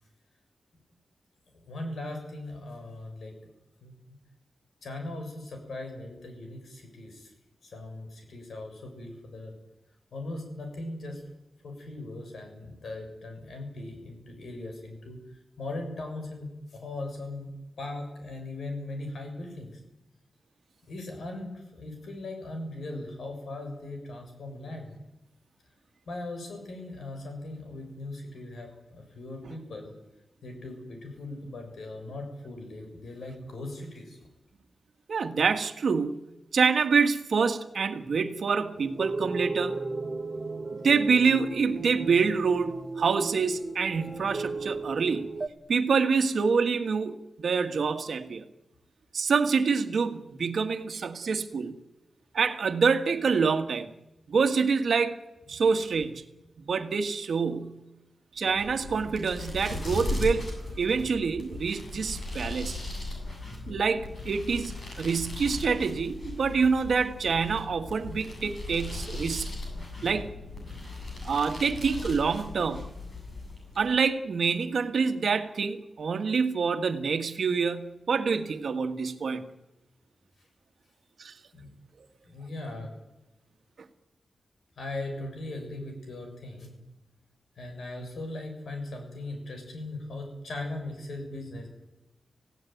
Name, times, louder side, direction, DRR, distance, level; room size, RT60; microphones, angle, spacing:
voice 1, 1.5-3.3 3.8-3.9 4.8-7.3 7.6-9.5 10.1-11.2 11.6-15.2 15.6-17.5 17.8-19.8 20.9-25.0 26.1-29.9 30.4-34.2 80.4-80.5 81.5-81.7 82.2-82.9 84.8-86.8 87.6-91.7, left 2 dB, 70° left, 4 dB, 7.1 m, -39 dB
voice 2, 35.1-36.2 36.5-39.8 40.7-45.3 45.7-48.4 49.1-51.8 52.3-53.9 54.3-55.2 55.5-56.3 56.6-57.8 58.3-60.5 60.8-62.8 63.7-64.7 65.0-69.6 70.0-70.3 71.2-73.0 73.8-79.4 81.2-81.3, right 5 dB, 65° right, 8 dB, 1.7 m, -26 dB
sound 1, 38.8-45.5, right 3 dB, 25° right, 1.6 m, -35 dB
sound 2, 58.4-73.9, left 2 dB, 40° left, 7.9 m, -38 dB
26.5 x 16.5 x 9.4 m, 0.98 s
wide cardioid pair, 160°, 0 cm